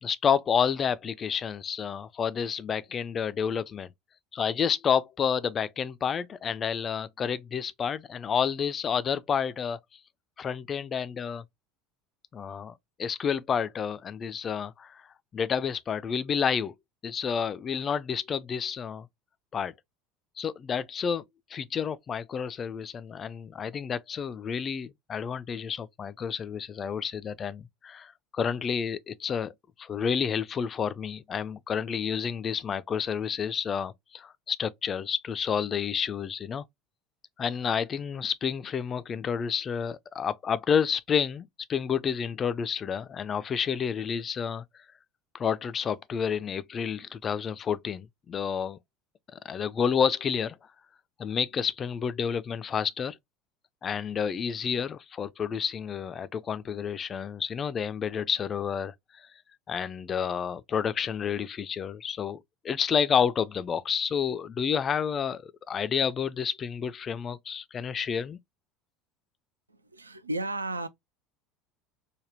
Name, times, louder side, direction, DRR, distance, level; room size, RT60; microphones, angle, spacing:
voice 1, 0.0-3.9 4.3-9.8 10.4-11.4 12.3-12.7 13.0-15.0 15.3-16.7 17.0-19.1 19.5-19.7 20.4-21.2 21.5-29.5 29.8-36.7 37.4-44.6 45.3-48.8 49.3-50.6 51.2-53.2 53.8-59.3 59.7-68.4, left 7 dB, 30° left, 0.3 m, -30 dB
voice 2, 69.7-70.9, right 2 dB, 85° right, 0.3 m, -33 dB
3.3 x 2.1 x 2.7 m
figure-of-eight pair, 70°, 0 cm